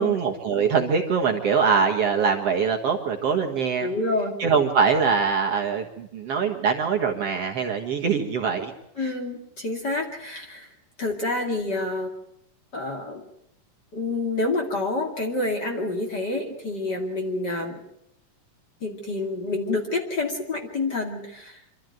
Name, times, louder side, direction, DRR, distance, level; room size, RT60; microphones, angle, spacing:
voice 1, 0.0-3.9 4.4-8.7 9.0-9.1, right 6 dB, 55° right, 1 dB, 2.2 m, -23 dB
voice 2, 3.8-4.4 9.0-10.7 11.0-12.1 12.7-13.3 13.9-17.8 18.8-21.6, left 2 dB, 35° left, 2 dB, 2.6 m, -28 dB
26.0 x 13.0 x 9.2 m, 0.78 s
omnidirectional pair, 3.9 m